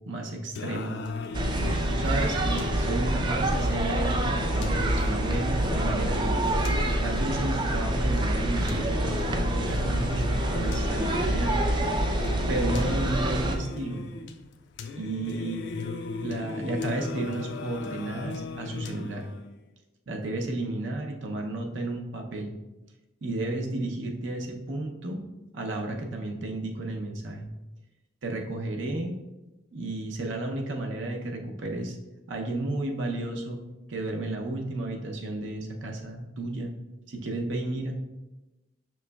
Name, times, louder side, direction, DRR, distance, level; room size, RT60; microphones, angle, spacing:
voice 1, 0.1-0.9 1.9-6.5 7.0-11.7 12.5-14.0 15.0-15.6 16.2-19.3 20.1-22.5 23.2-25.2 25.5-27.5 28.2-29.2 29.7-32.0 32.3-33.6 33.9-36.7 37.1-38.0, right 2 dB, 70° right, 2 dB, 0.6 m, -32 dB
Singing, 0.5-19.5, left 4 dB, 60° left, 0.3 m, -37 dB
sound 1, 1.3-13.6, right 1 dB, 25° right, 0.3 m, -26 dB
5.9 x 3.1 x 2.2 m, 1.0 s
head